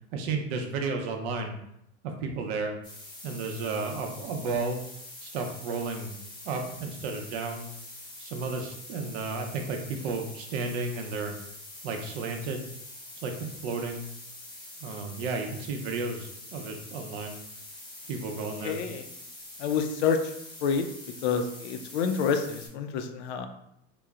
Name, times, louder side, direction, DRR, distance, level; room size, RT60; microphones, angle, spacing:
voice 1, 0.1-1.5 2.0-2.7 3.2-4.8 5.2-6.2 6.4-7.7 8.2-11.3 11.8-12.7 13.2-14.1 14.8-17.4 18.1-18.8, right 4 dB, 75° right, 4 dB, 0.6 m, -33 dB
sound 1, 2.8-22.7, left 2 dB, 15° left, 0.8 m, -45 dB
voice 2, 18.6-19.0 19.6-20.2 20.6-20.8 21.2-23.5, left 6 dB, 90° left, 7 dB, 0.5 m, -28 dB
2.9 x 2.0 x 2.3 m, 0.77 s
supercardioid pair, 135°, 33 cm